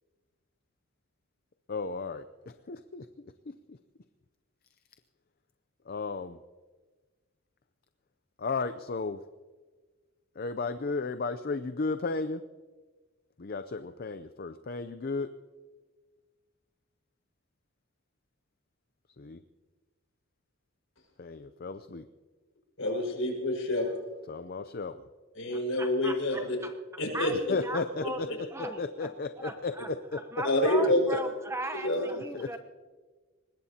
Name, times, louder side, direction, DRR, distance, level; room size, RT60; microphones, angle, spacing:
voice 1, 1.7-3.1 3.5-3.8 5.9-6.4 8.4-9.2 10.4-12.4 13.4-15.3 19.2-19.4 21.2-22.1 24.3-25.0 27.3-30.4 32.3-32.5, left 3 dB, 45° left, 10 dB, 0.5 m, -34 dB
voice 2, 22.8-23.9 25.4-26.6 27.0-27.3 30.4-31.2 31.8-32.1, left 1 dB, 70° left, 0 dB, 5.5 m, -27 dB
voice 3, 25.5-26.4 27.1-29.1 29.4-29.9 30.3-32.6, right 1 dB, 15° right, 7 dB, 0.9 m, -38 dB
24.0 x 20.5 x 2.9 m, 1.4 s
head